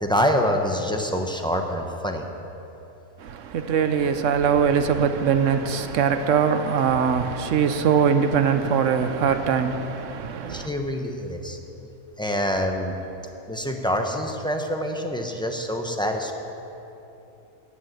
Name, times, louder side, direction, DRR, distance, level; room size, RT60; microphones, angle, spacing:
voice 1, 0.0-2.3 10.5-11.6 12.2-12.9 13.5-16.3, equal, 5° left, 0.6 m, -26 dB
voice 2, 3.2-10.7, right 7 dB, 60° right, 1.0 m, -22 dB
14.5 x 6.5 x 9.3 m
omnidirectional pair, 1.6 m